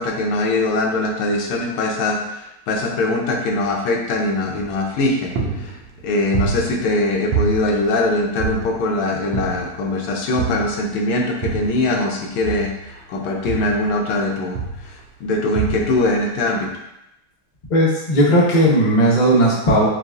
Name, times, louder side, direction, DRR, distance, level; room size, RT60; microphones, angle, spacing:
voice 1, 0.0-5.7 6.0-12.7 13.1-14.6 15.2-16.7, left 2 dB, 90° left, 0 dB, 1.6 m, -21 dB
sound 1, 4.6-5.0 5.4-7.0 7.3-8.9 9.3-9.9 10.4-11.9 12.4-14.2 14.5-15.0 15.5-16.1, right 5 dB, 85° right, 1.5 m, -27 dB
voice 2, 17.7-19.9, right 1 dB, 60° left, -5 dB, 0.4 m, -16 dB
6.6 x 2.3 x 2.4 m, 0.86 s
omnidirectional pair, 2.3 m